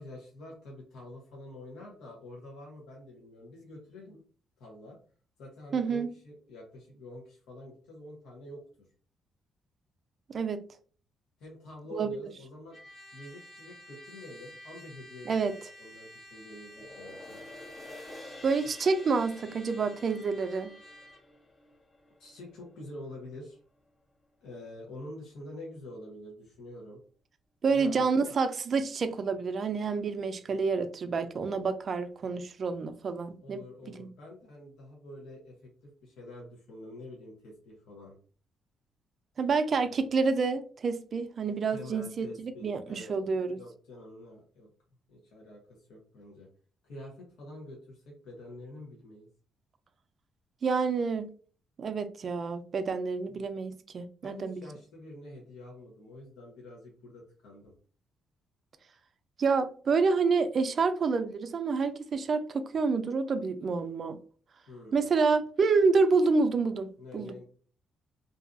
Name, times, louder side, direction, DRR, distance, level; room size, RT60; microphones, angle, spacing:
voice 1, 0.0-4.2 4.6-5.0 5.4-8.6 11.4-12.8 13.1-17.4 22.2-23.6 24.4-27.0 27.7-28.1 30.3-30.6 33.4-35.6 35.8-38.2 41.7-43.2 43.5-44.7 45.1-46.5 46.8-49.3 53.3-53.5 54.2-57.7 64.7-65.3 67.0-67.4, left 1 dB, 85° left, 0.9 m, -47 dB
voice 2, 5.7-6.1 10.3-10.7 11.9-12.2 15.3-15.5 18.4-20.7 27.6-33.6 34.0-34.1 39.4-43.6 50.6-51.3 51.8-54.6 59.4-64.2 64.9-67.4, right 4 dB, 50° right, 0.3 m, -28 dB
Trumpet, 12.7-21.2, equal, 55° left, 1.3 m, -51 dB
sound 1, 16.7-23.3 23.7-23.8, left 2 dB, 30° left, 0.6 m, -50 dB
2.6 x 2.3 x 2.5 m
cardioid pair, 90°, 0 cm